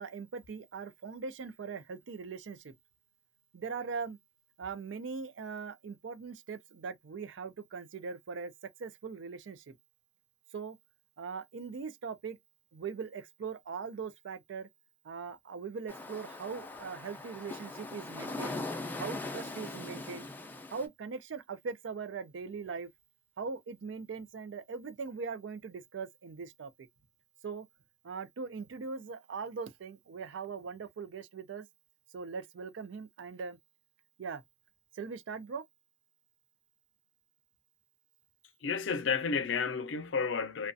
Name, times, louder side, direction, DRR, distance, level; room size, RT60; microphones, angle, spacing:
voice 1, 0.0-2.7 3.5-4.2 4.6-8.5 8.8-9.7 10.5-10.8 11.2-12.4 12.7-14.7 15.0-18.6 19.0-20.3 20.7-22.9 23.4-26.7 27.4-27.7 28.0-31.7 32.1-33.6 34.2-34.4 34.9-35.6, right 5 dB, 85° right, 0.4 m, -40 dB
sound 1, 15.9-20.8, left 2 dB, 10° left, 0.4 m, -40 dB
voice 2, 38.6-40.7, left 5 dB, 85° left, 0.5 m, -31 dB
2.3 x 2.2 x 2.5 m
head